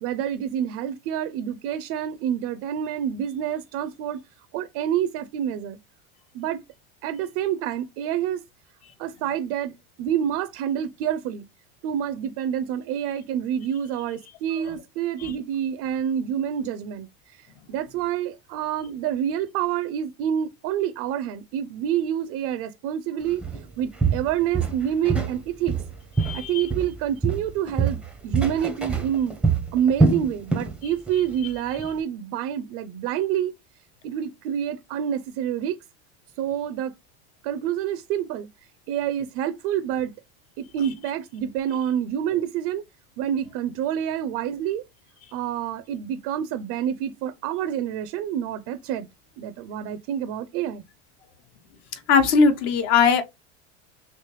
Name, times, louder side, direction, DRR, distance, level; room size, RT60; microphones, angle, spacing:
voice 1, 0.0-4.2 4.5-5.8 6.3-6.6 7.0-8.4 9.0-9.7 10.0-11.4 11.8-17.1 17.3-23.4 23.8-25.8 26.3-29.3 29.7-33.5 34.0-35.8 36.4-36.9 37.4-38.5 38.9-40.1 40.6-42.8 43.2-44.8 45.3-49.1 49.4-50.8, right 10 dB, 55° right, 0.5 m, -27 dB
Walk footsteps, 23.4-23.6 24.0-25.4 25.7-27.0 27.2-30.8 31.1-31.3 31.8-31.9, right 4 dB, 5° right, 0.5 m, -24 dB
voice 2, 26.2-26.6 52.1-53.2, left 5 dB, 60° left, 1.0 m, -19 dB
3.3 x 3.0 x 3.0 m
supercardioid pair, 125°, 35 cm